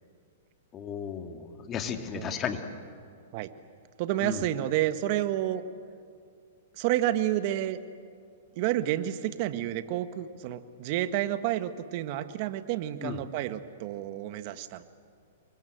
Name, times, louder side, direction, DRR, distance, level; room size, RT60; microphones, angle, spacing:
voice 1, 0.7-2.6 4.2-4.5 13.0-13.2, left 7 dB, 25° left, 6 dB, 2.4 m, -34 dB
voice 2, 4.0-5.6 6.8-7.8 8.5-14.8, right 13 dB, 50° right, 11 dB, 1.5 m, -30 dB
28.5 x 24.0 x 8.0 m, 2.3 s
hypercardioid pair, 135°, 0 cm